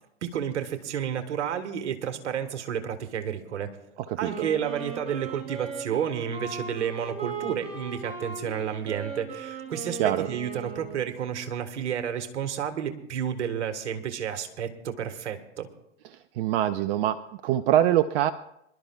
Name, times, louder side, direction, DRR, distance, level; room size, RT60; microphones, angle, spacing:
voice 1, 0.2-3.8 4.2-15.7, right 8 dB, 75° right, 7 dB, 1.6 m, -31 dB
Wind instrument woodwind instrument, 4.1-11.3, right 5 dB, 20° right, 4.1 m, -38 dB
voice 2, 16.3-18.3, right 12 dB, 50° right, 11 dB, 0.6 m, -24 dB
25.5 x 12.0 x 2.4 m, 0.79 s
hypercardioid pair, 100°, 35 cm